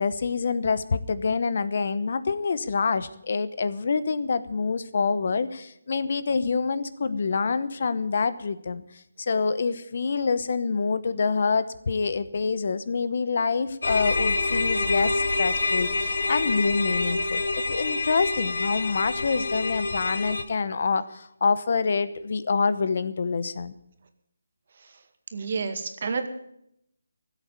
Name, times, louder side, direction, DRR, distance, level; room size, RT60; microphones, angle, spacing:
voice 1, 0.0-8.8 9.2-23.7, left 4 dB, 55° left, 14 dB, 1.0 m, -26 dB
sound 1, 13.8-20.4, left 3 dB, 70° left, 2.0 m, -26 dB
voice 2, 25.3-26.3, right 4 dB, 50° right, 7 dB, 2.0 m, -29 dB
15.5 x 8.4 x 9.4 m, 0.76 s
figure-of-eight pair, 160°, 0 cm